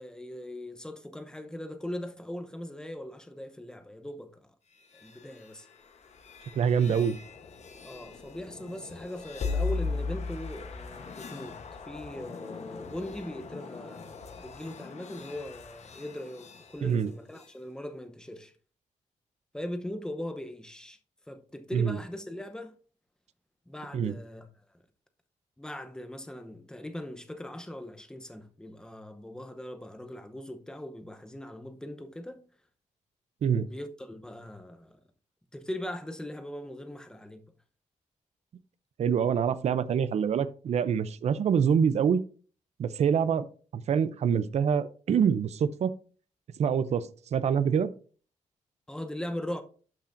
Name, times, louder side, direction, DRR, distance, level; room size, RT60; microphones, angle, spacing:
voice 1, 0.0-4.5 4.9-5.7 7.8-11.6 11.8-18.5 19.5-21.0 21.3-22.7 23.7-24.5 25.6-32.5 33.5-35.0 35.5-37.4 48.9-49.6, left 1 dB, 5° left, 0.7 m, -40 dB
sound 1, 4.7-17.6, left 4 dB, 60° left, 1.0 m, -39 dB
voice 2, 6.6-7.2 16.8-17.1 21.7-22.0 23.9-24.1 33.4-33.7 39.0-42.2 42.8-43.4 43.7-45.9 46.6-47.9, right 7 dB, 55° right, 0.5 m, -25 dB
12.0 x 5.7 x 2.5 m
wide cardioid pair, 175°, 13 cm